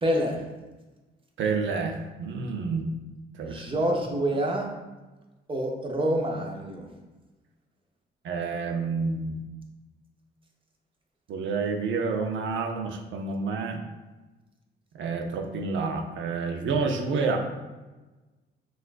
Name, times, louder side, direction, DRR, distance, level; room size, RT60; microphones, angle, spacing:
voice 1, 0.0-0.4 3.4-4.7 5.5-6.9, right 1 dB, 25° right, 1 dB, 0.8 m, -27 dB
voice 2, 1.4-2.9 3.4-3.9 8.2-9.3 11.3-13.8 14.9-17.4, right 4 dB, 75° right, 4 dB, 0.6 m, -29 dB
6.0 x 2.4 x 2.5 m, 1.2 s
cardioid pair, 90°, 20 cm